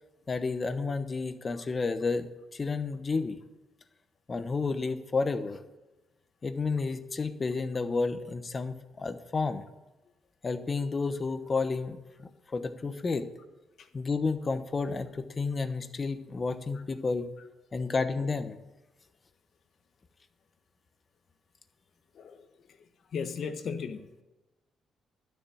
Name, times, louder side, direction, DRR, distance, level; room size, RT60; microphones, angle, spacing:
voice 1, 0.3-3.4 4.3-5.6 6.4-9.6 10.4-12.0 12.5-13.3 13.9-17.3 17.7-18.6, left 4 dB, 30° left, 10 dB, 1.0 m, -31 dB
voice 2, 22.1-24.1, left 6 dB, 60° left, 8 dB, 1.2 m, -38 dB
12.0 x 7.0 x 8.6 m, 1.1 s
cardioid pair, 90°, 0 cm